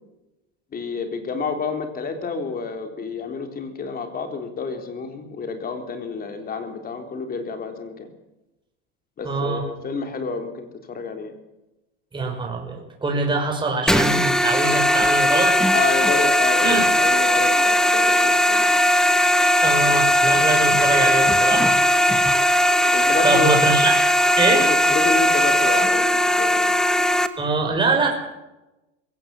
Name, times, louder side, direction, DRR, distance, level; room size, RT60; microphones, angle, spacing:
voice 1, 0.7-8.1 9.2-11.3 15.7-18.7 22.9-23.6 24.5-26.7, left 4 dB, 30° left, 6 dB, 3.8 m, -29 dB
voice 2, 9.2-9.6 12.1-15.8 16.6-16.9 19.6-21.7 22.0-22.5 23.2-24.0 24.4-24.7 27.4-28.1, right 3 dB, 15° right, 1 dB, 5.7 m, -24 dB
sound 1, 13.9-27.3, equal, ahead, 1.2 m, -18 dB
21.5 x 17.0 x 7.8 m, 0.98 s
supercardioid pair, 130°, 30 cm